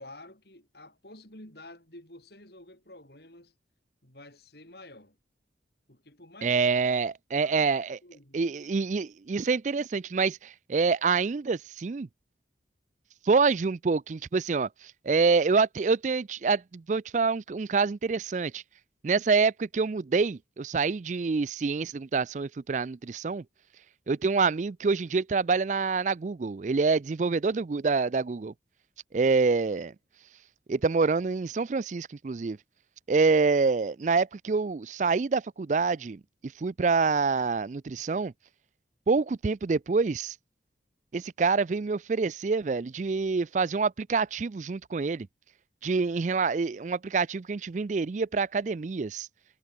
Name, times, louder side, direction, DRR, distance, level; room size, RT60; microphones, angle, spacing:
voice 1, 0.0-3.5 4.0-5.2 5.9-6.6 7.3-7.7 8.0-8.8, left 1 dB, 60° left, 7.4 m, -50 dB
voice 2, 6.4-8.0 8.3-12.1 13.2-18.6 19.0-23.4 24.1-28.5 29.1-29.9 30.7-32.6 33.1-38.3 39.1-40.4 41.1-45.3 45.8-49.3, right 4 dB, 40° right, 0.4 m, -26 dB
head